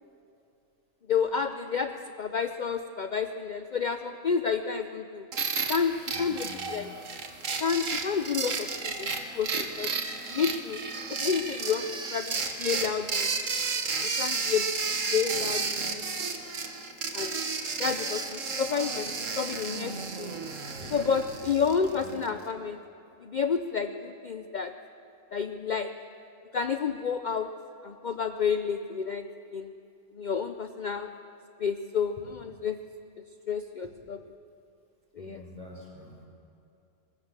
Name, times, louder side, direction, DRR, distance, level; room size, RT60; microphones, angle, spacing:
voice 1, 1.1-5.3 5.7-6.9 7.6-9.9 10.3-10.8 11.2-13.5 14.0-14.7 15.1-16.0 17.1-17.3 17.8-20.3 20.9-22.8 23.2-24.7 25.3-25.9 26.5-27.5 27.8-29.2 29.5-29.7 30.1-31.1 31.6-32.8 33.5-34.2 35.2-35.4, left 6 dB, 55° left, 8 dB, 0.5 m, -30 dB
sound 1, 5.3-22.3, right 4 dB, 55° right, 1.8 m, -32 dB
voice 2, 6.1-6.7 20.8-20.9 22.0-22.1 35.2-36.3, left 2 dB, 20° right, -2 dB, 6.1 m, -46 dB
24.5 x 20.5 x 7.4 m, 2.6 s
omnidirectional pair, 1.6 m